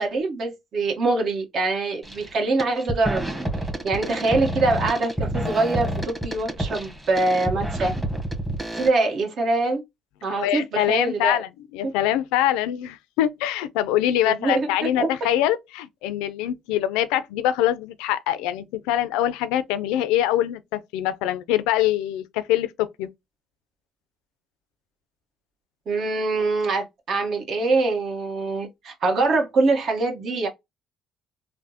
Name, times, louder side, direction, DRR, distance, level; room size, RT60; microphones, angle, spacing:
voice 1, 0.0-3.2 3.8-7.9 8.7-9.8 10.2-11.4 11.8-11.9 14.3-15.1 25.9-30.5, right 3 dB, 60° right, 1.1 m, -24 dB
sound 1, 2.0-2.3 2.6-8.9, right 1 dB, 10° right, 1.0 m, -29 dB
voice 2, 10.3-23.1, left 12 dB, 90° left, 0.3 m, -24 dB
3.3 x 2.1 x 2.7 m
supercardioid pair, 70°, 0 cm